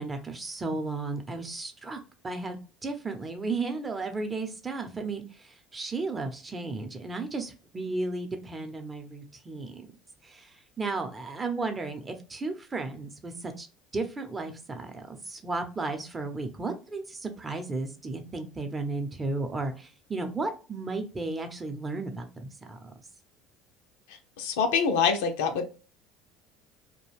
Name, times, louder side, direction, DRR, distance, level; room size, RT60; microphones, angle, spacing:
voice 1, 0.0-2.0 2.2-9.9 10.2-10.5 10.8-13.7 13.9-22.9, right 3 dB, 20° right, 5 dB, 0.7 m, -34 dB
voice 2, 24.4-25.7, left 6 dB, 85° left, 5 dB, 0.5 m, -25 dB
2.5 x 2.2 x 3.2 m, 0.34 s
supercardioid pair, 90°, 0 cm